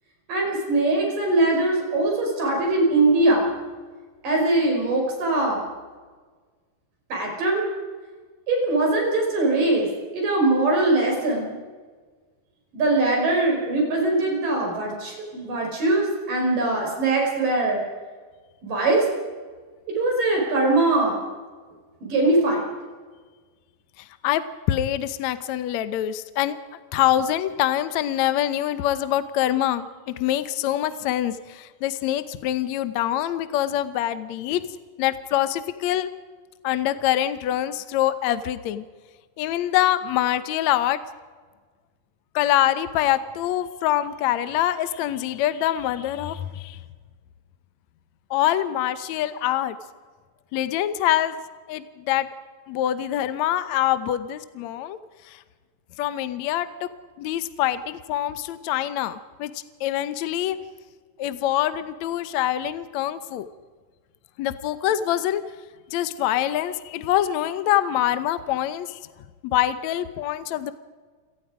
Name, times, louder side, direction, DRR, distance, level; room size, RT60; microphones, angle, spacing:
voice 1, 0.3-3.5 4.2-5.6 7.1-7.7 8.5-9.9 10.1-11.6 12.7-17.8 18.6-19.1 19.9-21.2 22.0-22.7, right 2 dB, 60° right, 0 dB, 7.0 m, -21 dB
voice 2, 24.2-26.6 26.9-34.6 35.0-36.1 36.6-38.8 39.4-41.0 42.4-46.8 48.3-49.8 50.5-51.4 51.7-52.3 52.7-55.0 55.3-55.4 56.0-56.9 57.2-60.6 61.2-63.5 64.4-65.4 65.9-69.0 69.4-70.7, left 12 dB, 70° left, 12 dB, 1.7 m, -25 dB
28.5 x 18.0 x 5.0 m, 1.5 s
omnidirectional pair, 4.2 m